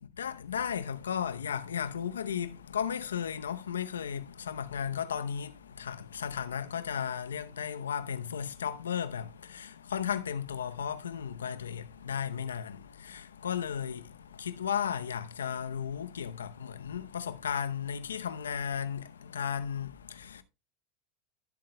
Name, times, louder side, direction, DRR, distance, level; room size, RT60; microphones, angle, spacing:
voice 1, 0.2-20.4, left 8 dB, 90° left, 0.7 m, -35 dB
14.5 x 7.5 x 2.2 m
hypercardioid pair, 95°, 0 cm